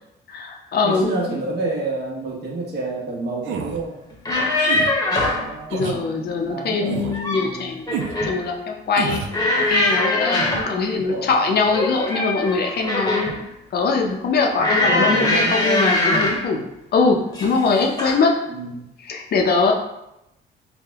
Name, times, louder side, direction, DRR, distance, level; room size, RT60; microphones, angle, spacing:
voice 1, 0.3-1.1 5.7-7.9 8.3-9.2 9.7-13.3 13.7-16.6 16.9-18.3 19.1-19.7, left 4 dB, 55° left, 2 dB, 0.6 m, -21 dB
voice 2, 0.8-4.0 5.1-7.8 10.9-11.3 14.8-15.6 18.5-18.9, right 3 dB, 55° right, -3 dB, 1.0 m, -29 dB
sound 1, 3.4-3.8 4.6-4.9 5.7-6.0 6.9-7.2 7.9-8.2 9.0-9.4, right 7 dB, 75° right, 0.4 m, -28 dB
sound 2, 4.1-5.5 6.9-7.5 7.9-8.4 9.3-10.7 11.7-13.4 14.6-16.5 17.3-17.6 18.0-18.2, left 1 dB, 20° left, 0.8 m, -22 dB
3.4 x 2.1 x 3.4 m, 0.86 s
cardioid pair, 90°, 20 cm